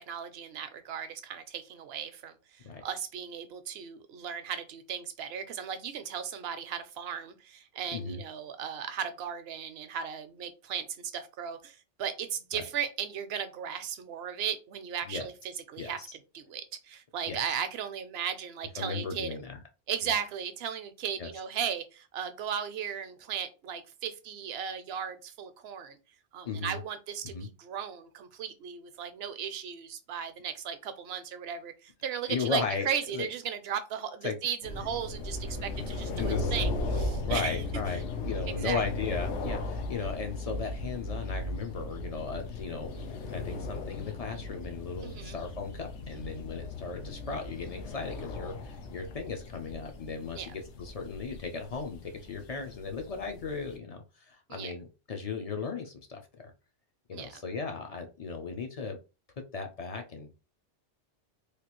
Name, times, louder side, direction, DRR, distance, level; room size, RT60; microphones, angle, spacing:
voice 1, 0.0-15.3 15.7-16.0 16.3-19.3 19.9-26.0 26.3-37.6 38.5-38.8 45.0-45.4 50.3-50.5 54.5-54.7 57.1-57.4, right 8 dB, 70° right, 0.8 m, -36 dB
voice 2, 7.9-8.2 12.5-12.6 15.1-15.3 15.8-16.1 17.3-17.4 18.8-19.6 20.0-20.1 21.2-21.3 26.5-26.8 27.2-27.5 32.3-33.3 34.2-34.4 36.2-36.5 37.2-56.5 57.1-59.0 59.5-60.3, left 4 dB, 50° left, 0.4 m, -36 dB
sound 1, 34.6-53.8, left 2 dB, 80° left, 0.9 m, -37 dB
3.3 x 2.4 x 2.9 m
omnidirectional pair, 1.2 m